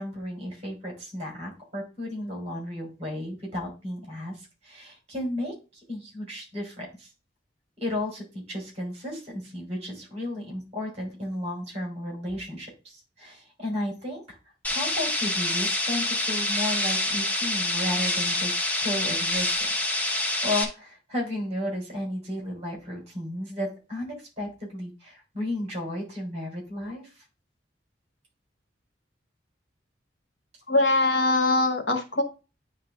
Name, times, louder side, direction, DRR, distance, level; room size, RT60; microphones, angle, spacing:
voice 1, 0.0-7.1 7.8-14.4 14.7-18.6 18.8-19.7 20.4-27.2, left 1 dB, 40° right, 0 dB, 3.6 m, -33 dB
sound 1, 14.6-20.6, left 1 dB, 10° left, 1.0 m, -26 dB
voice 2, 30.7-32.2, left 2 dB, 85° left, 6 dB, 1.3 m, -22 dB
9.6 x 3.4 x 3.4 m, 0.31 s
head